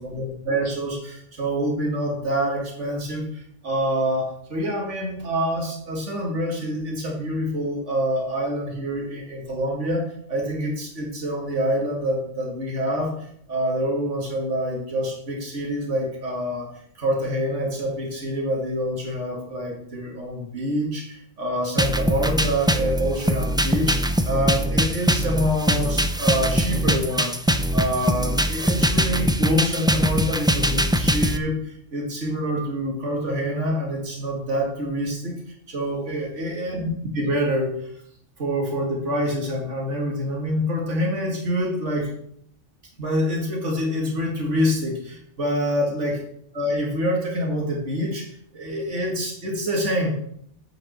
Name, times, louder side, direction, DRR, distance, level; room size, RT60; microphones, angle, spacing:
voice 1, 0.0-13.1 13.5-16.7 17.0-35.4 35.7-37.7 38.4-42.1 43.0-46.2 46.5-48.3 48.5-50.1, equal, 75° right, -1 dB, 2.5 m, -26 dB
sound 1, 21.8-31.4, equal, 5° right, 0.3 m, -22 dB
8.6 x 5.9 x 7.3 m, 0.69 s
omnidirectional pair, 1.2 m